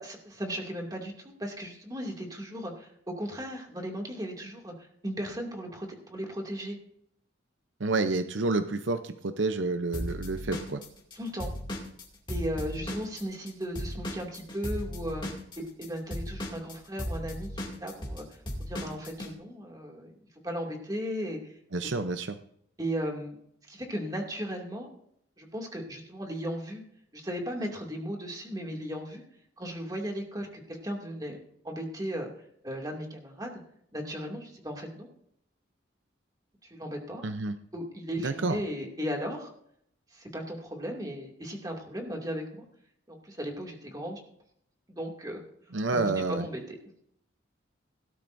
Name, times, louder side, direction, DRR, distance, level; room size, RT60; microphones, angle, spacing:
voice 1, 0.0-1.1 1.4-4.7 5.0-6.8 11.1-11.5 12.3-15.2 15.6-20.1 20.4-21.5 22.8-23.4 23.7-24.9 25.4-26.8 27.1-29.2 29.6-31.4 31.6-32.3 32.6-33.6 33.9-35.1 36.6-37.2 37.7-39.5 40.1-42.6 43.1-44.2 45.0-45.4 46.0-46.8, equal, 20° right, 1 dB, 2.5 m, -36 dB
voice 2, 7.8-10.8 21.7-22.4 37.2-37.6 38.2-38.6 45.7-46.5, right 3 dB, 75° right, 9 dB, 0.7 m, -29 dB
Drum kit / Drum, 9.9-13.5 13.8-19.3, equal, 25° left, 2.5 m, -36 dB
18.0 x 12.5 x 2.7 m, 0.70 s
head